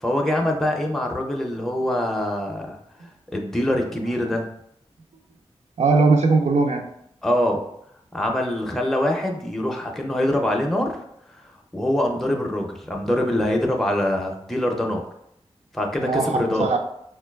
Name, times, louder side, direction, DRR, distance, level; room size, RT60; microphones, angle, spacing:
voice 1, 0.0-2.8 3.3-4.5 7.2-7.6 8.1-11.0 11.3-11.4 11.7-15.0 15.7-16.7, left 1 dB, 5° left, 1 dB, 0.4 m, -24 dB
voice 2, 5.8-6.9 16.0-16.8, right 3 dB, 85° right, 4 dB, 0.4 m, -20 dB
4.4 x 2.2 x 2.2 m, 0.73 s
wide cardioid pair, 95°, 11 cm